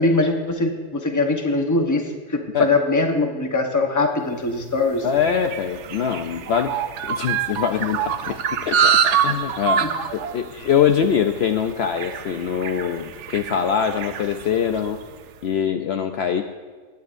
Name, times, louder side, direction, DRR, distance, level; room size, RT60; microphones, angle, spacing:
voice 1, 0.0-5.1 9.8-9.9, left 2 dB, 15° left, 3 dB, 0.9 m, -22 dB
sound 1, 4.5-15.1, right 8 dB, 70° right, 0.9 m, -26 dB
voice 2, 5.0-6.8 7.0-8.4 8.7-9.9 10.1-15.0 15.4-16.4, left 8 dB, 65° left, 6 dB, 0.8 m, -23 dB
21.0 x 9.3 x 2.6 m, 1.4 s
omnidirectional pair, 1.3 m